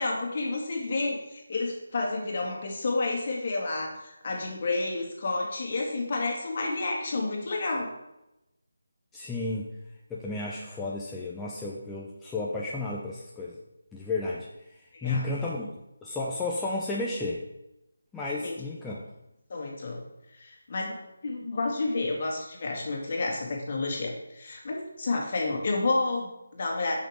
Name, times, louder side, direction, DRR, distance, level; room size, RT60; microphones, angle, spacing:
voice 1, 0.0-7.9 14.9-15.4 18.3-18.6 19.5-20.0 20.3-21.0 21.2-26.9, left 3 dB, 45° left, 0 dB, 2.3 m, -30 dB
voice 2, 9.1-9.7 10.1-13.6 13.9-14.5 15.0-15.7 16.0-17.4 18.1-19.0, left 2 dB, 5° left, -5 dB, 0.7 m, -32 dB
9.0 x 6.0 x 5.1 m, 0.91 s
figure-of-eight pair, 160°, 0 cm